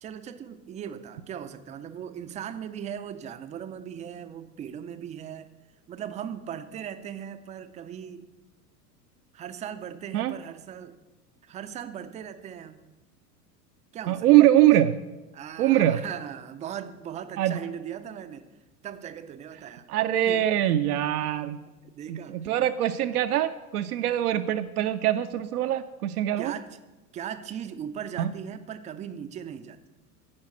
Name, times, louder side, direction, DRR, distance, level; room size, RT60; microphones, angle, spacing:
voice 1, 0.0-5.5 5.9-8.3 9.3-11.0 11.4-12.9 13.9-14.5 15.3-18.5 18.8-19.9 20.3-20.4 21.8-22.5 26.4-26.8 27.1-29.8, right 9 dB, 15° right, 11 dB, 0.4 m, -38 dB
voice 2, 14.1-15.0 15.6-16.0 17.4-17.6 19.9-21.6 22.1-26.5 28.2-28.3, right 13 dB, 65° right, 7 dB, 0.6 m, -23 dB
9.6 x 5.2 x 7.8 m, 1.1 s
figure-of-eight pair, 90°, 49 cm